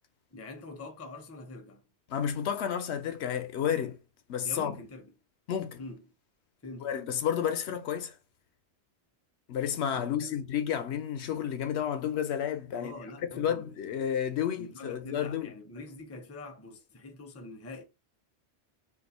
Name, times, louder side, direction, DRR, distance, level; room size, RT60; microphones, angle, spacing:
voice 1, 0.3-1.9 4.4-5.1 5.8-6.0 6.6-6.9 9.9-10.5 12.7-13.9 14.6-17.8, left 2 dB, 20° left, 0.4 m, -44 dB
voice 2, 2.1-4.0 4.3-4.7 5.5-5.8 6.8-8.1 9.5-12.9 13.4-15.5, left 9 dB, 75° left, 0.9 m, -31 dB
2.7 x 2.6 x 4.1 m
omnidirectional pair, 1.1 m